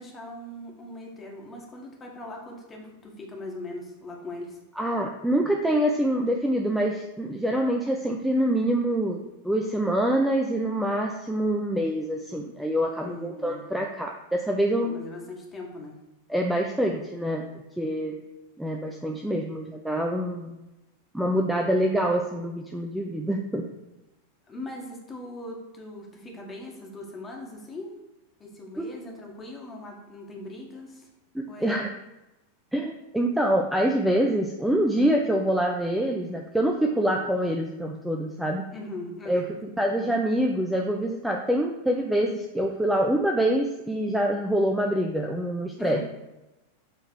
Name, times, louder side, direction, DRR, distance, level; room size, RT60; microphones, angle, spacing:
voice 1, 0.0-4.6 13.0-13.6 14.8-16.0 24.5-27.9 28.4-31.1 31.5-31.8 38.7-39.5 45.8-46.0, left 2 dB, 20° left, 0 dB, 1.8 m, -40 dB
voice 2, 4.8-14.9 16.3-17.4 17.8-18.2 18.6-20.5 21.1-23.7 28.8-28.9 31.3-31.9 32.7-38.6 39.3-46.0, right 1 dB, 5° right, 1 dB, 0.6 m, -25 dB
7.7 x 3.9 x 4.7 m, 0.99 s
figure-of-eight pair, 90°, 0 cm